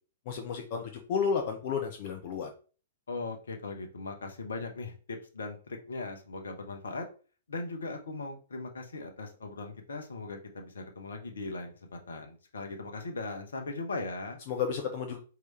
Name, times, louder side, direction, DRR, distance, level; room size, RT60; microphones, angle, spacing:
voice 1, 0.3-2.5 14.5-15.2, left 6 dB, 45° left, 3 dB, 0.7 m, -32 dB
voice 2, 3.1-7.1 7.5-14.4, left 3 dB, 65° left, 5 dB, 1.0 m, -39 dB
4.6 x 2.9 x 3.2 m, 0.37 s
figure-of-eight pair, 110°, 0 cm